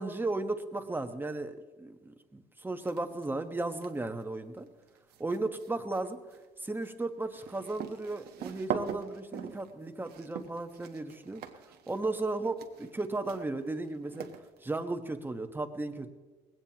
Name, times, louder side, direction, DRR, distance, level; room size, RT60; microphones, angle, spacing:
voice 1, 0.0-4.7 5.2-6.2 6.6-11.4 11.9-14.3 14.6-16.1, right 2 dB, 10° right, 7 dB, 1.2 m, -35 dB
sound 1, 2.8-3.3 3.6-14.8, right 8 dB, 70° right, 1.2 m, -42 dB
20.0 x 17.0 x 2.9 m, 1.3 s
cardioid pair, 110°, 17 cm